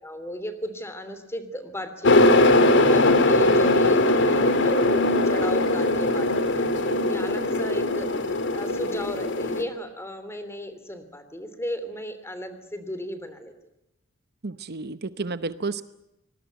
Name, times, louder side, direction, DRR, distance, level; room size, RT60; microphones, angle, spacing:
voice 1, 0.0-8.1 8.5-13.5, left 1 dB, 15° left, 10 dB, 3.2 m, -35 dB
sound 1, 2.0-9.6, left 2 dB, 60° left, 2.6 m, -20 dB
voice 2, 14.4-15.8, right 3 dB, 55° right, 13 dB, 0.9 m, -31 dB
25.5 x 20.5 x 9.3 m, 0.84 s
head